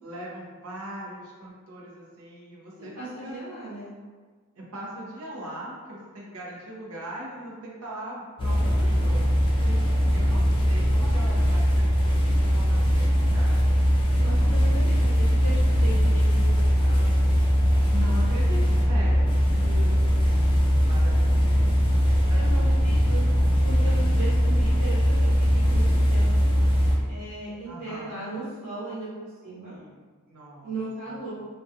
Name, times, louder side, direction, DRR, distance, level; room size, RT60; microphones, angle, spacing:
voice 1, 0.0-2.9 3.2-3.4 4.6-9.3 10.1-13.8 14.2-14.9 17.9-19.3 20.8-21.6 21.9-22.9 27.7-28.1 29.7-29.9 30.3-30.7, right 1 dB, 80° right, -4 dB, 0.6 m, -40 dB
voice 2, 2.8-3.9 9.6-10.2 14.1-17.2 19.5-20.1 22.3-23.2 23.6-26.5 27.1-29.7 30.6-31.3, right 2 dB, 35° right, -11 dB, 0.8 m, -37 dB
sound 1, 8.4-26.9, equal, 25° left, 0.4 m, -21 dB
2.3 x 2.2 x 2.6 m, 1.5 s
head